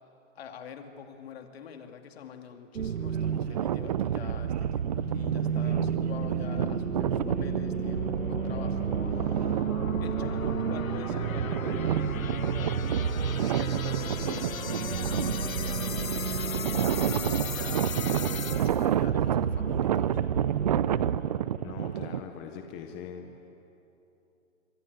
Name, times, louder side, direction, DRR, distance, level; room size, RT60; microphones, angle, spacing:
voice 1, 0.3-9.6 10.0-17.9 18.6-20.2, left 7 dB, 50° left, 5 dB, 2.6 m, -45 dB
sound 1, 2.7-21.2, right 7 dB, 85° right, 1.0 m, -31 dB
sound 2, 3.2-22.2, right 10 dB, 30° right, 0.6 m, -31 dB
sound 3, 4.9-18.9, left 7 dB, 85° left, 1.4 m, -38 dB
voice 2, 21.6-23.4, left 7 dB, 10° left, 5 dB, 0.5 m, -41 dB
25.5 x 24.5 x 9.4 m, 2.9 s
hypercardioid pair, 150°, 40 cm